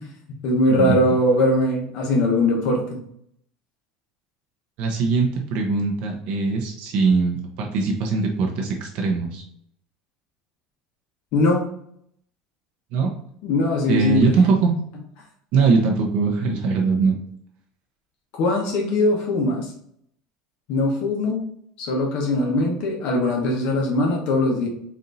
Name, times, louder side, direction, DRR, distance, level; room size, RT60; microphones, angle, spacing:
voice 1, 0.4-3.0 11.3-11.6 13.4-14.3 18.3-19.7 20.7-21.4 21.8-24.7, left 1 dB, 60° left, 0 dB, 1.0 m, -21 dB
voice 2, 4.8-9.4 12.9-13.1 13.9-14.7 15.5-17.2, right 4 dB, 60° right, 1 dB, 0.8 m, -21 dB
4.3 x 2.6 x 3.9 m, 0.69 s
cardioid pair, 140°, 2 cm